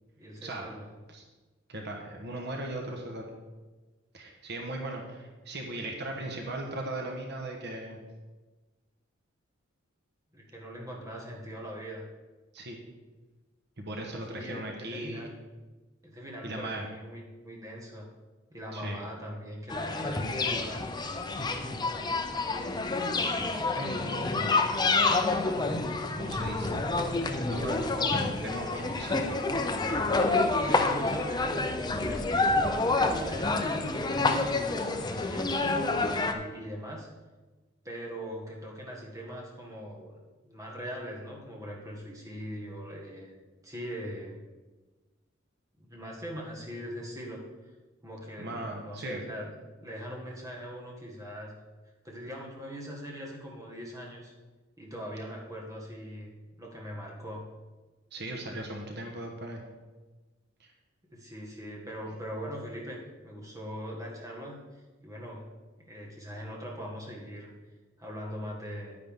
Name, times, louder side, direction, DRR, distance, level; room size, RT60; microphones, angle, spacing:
voice 1, 0.2-0.9 10.3-12.0 14.3-15.3 16.0-18.1 18.5-20.9 30.6-37.1 37.8-40.1 40.4-43.4 43.6-44.4 45.8-47.4 48.0-51.6 52.0-54.3 54.8-56.3 56.6-57.5 61.1-64.6 65.0-65.5 65.8-67.5 68.0-69.0, equal, 15° right, -2 dB, 1.7 m, -41 dB
voice 2, 1.7-3.2 4.1-8.0 12.5-12.8 13.8-15.3 16.4-16.9 18.7-19.0 23.7-24.7 26.2-26.8 27.2-29.4 48.4-49.2 58.1-59.6 60.6-60.7, right 1 dB, 55° right, 1 dB, 1.4 m, -38 dB
sound 1, 19.7-36.3, left 3 dB, 20° left, 0.6 m, -28 dB
9.8 x 9.8 x 3.7 m, 1.2 s
head